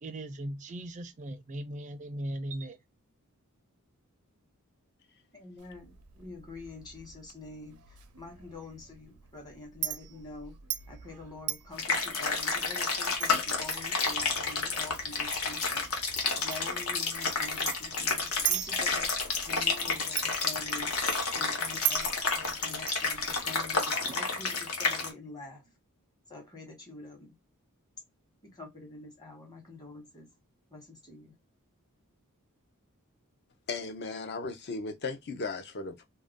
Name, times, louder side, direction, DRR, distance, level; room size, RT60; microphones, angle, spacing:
voice 1, 0.0-2.8, right 1 dB, 35° right, 0.4 m, -38 dB
voice 2, 5.3-10.6 10.9-15.9 16.3-19.1 19.5-20.9 21.3-25.7 26.3-27.3 28.4-30.3 30.7-31.3, left 3 dB, 20° left, 1.1 m, -46 dB
Chink clink, 5.6-23.8, right 12 dB, 90° right, 0.5 m, -41 dB
sound 1, 11.8-25.1, left 4 dB, 70° left, 1.0 m, -30 dB
voice 3, 33.7-36.0, left 4 dB, 50° left, 0.6 m, -36 dB
2.5 x 2.2 x 3.5 m
head